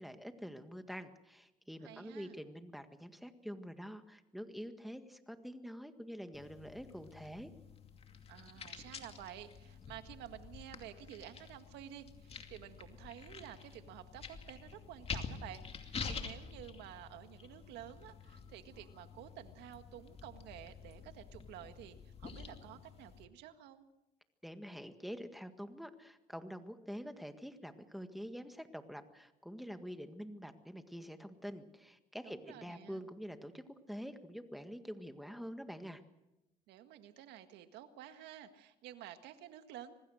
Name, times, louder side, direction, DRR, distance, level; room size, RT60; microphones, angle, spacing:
voice 1, 0.0-7.5 24.4-36.0, equal, ahead, 8 dB, 1.7 m, -46 dB
voice 2, 1.8-2.4 8.3-23.8 32.2-33.0 36.7-40.0, right 11 dB, 85° right, 8 dB, 1.9 m, -51 dB
sound 1, 6.3-23.3, left 5 dB, 35° left, 2.5 m, -48 dB
26.0 x 19.5 x 6.4 m, 0.95 s
cardioid pair, 110°, 17 cm